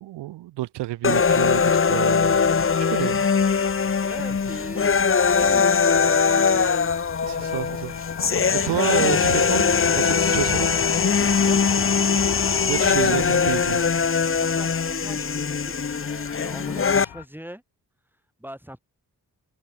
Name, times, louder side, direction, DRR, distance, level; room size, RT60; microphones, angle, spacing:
voice 1, 0.0-2.5 2.9-3.3 7.2-7.9 8.5-9.7 10.0-10.7 12.7-13.8, right 16 dB, 85° right, 0.5 m, -29 dB
sound 1, 1.0-17.1, left 5 dB, 35° left, 0.8 m, -21 dB
sound 2, 2.1-17.2, left 10 dB, 80° left, 2.1 m, -35 dB
voice 2, 4.0-5.0 5.3-6.7 7.3-7.8 11.4-11.7 14.4-17.6 18.4-18.8, equal, 5° right, 3.9 m, -41 dB
sound 3, 7.2-11.8, left 6 dB, 65° left, 4.1 m, -53 dB
open air
cardioid pair, 45°, 40 cm